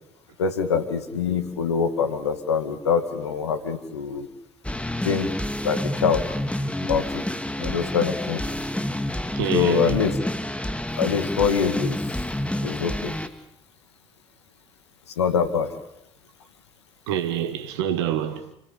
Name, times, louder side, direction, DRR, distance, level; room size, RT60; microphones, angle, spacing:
voice 1, 0.4-4.3 5.0-5.3 5.6-6.2 6.9-7.2 7.6-8.4 9.5-10.1 11.0-12.0 12.6-13.1 15.2-15.7, left 6 dB, 90° left, 2.3 m, -24 dB
sound 1, 4.6-13.3, left 1 dB, 10° left, 2.9 m, -28 dB
voice 2, 9.3-10.1 17.1-18.5, right 10 dB, 80° right, 2.0 m, -27 dB
29.5 x 19.5 x 8.6 m
hypercardioid pair, 45°, 14 cm